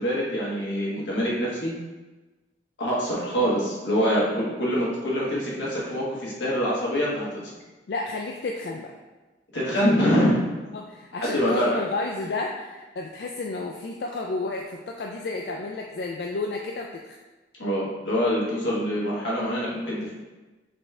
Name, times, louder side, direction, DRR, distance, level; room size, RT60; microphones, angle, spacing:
voice 1, 0.0-1.7 2.8-7.4 9.5-10.4 11.1-11.8 17.6-20.1, equal, 85° left, -6 dB, 1.4 m, -25 dB
voice 2, 7.9-8.9 10.7-17.2, left 3 dB, 60° left, 0 dB, 0.3 m, -32 dB
4.2 x 3.3 x 3.7 m, 1.2 s
head